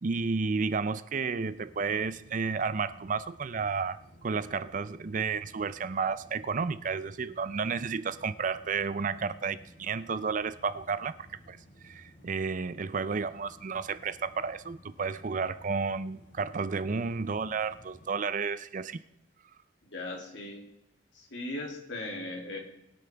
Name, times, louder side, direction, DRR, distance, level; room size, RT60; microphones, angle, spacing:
voice 1, 0.0-11.2 11.5-11.6 11.8-19.0, right 5 dB, 45° right, 14 dB, 0.5 m, -32 dB
sound 1, 1.4-18.1, equal, 50° left, 4.3 m, -56 dB
voice 2, 19.8-20.6 21.1-22.6, left 2 dB, 80° left, 0 dB, 2.7 m, -38 dB
21.5 x 8.6 x 3.4 m, 0.85 s
head